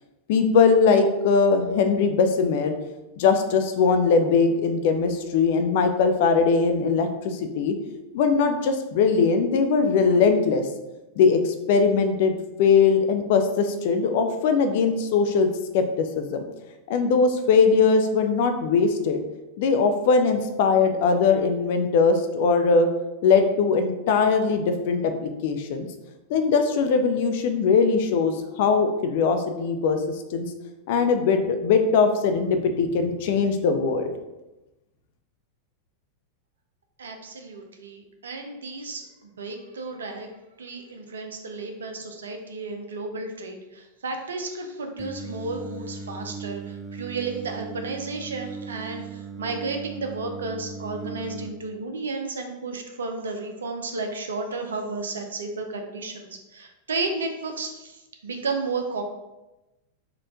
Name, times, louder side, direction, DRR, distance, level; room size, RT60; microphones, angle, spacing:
voice 1, 0.3-2.7 3.2-7.7 8.1-10.6 11.2-12.3 12.6-15.5 15.7-16.4 16.9-19.2 19.6-22.9 23.2-25.9 26.3-30.0 30.3-30.5 30.9-34.1, left 5 dB, 50° left, 7 dB, 0.5 m, -21 dB
voice 2, 37.0-40.3 40.6-59.0, right 3 dB, 65° right, 4 dB, 0.6 m, -33 dB
Singing, 45.0-51.5, right 5 dB, 15° right, 0.4 m, -38 dB
4.5 x 2.4 x 3.5 m, 1.0 s
figure-of-eight pair, 90°, 0 cm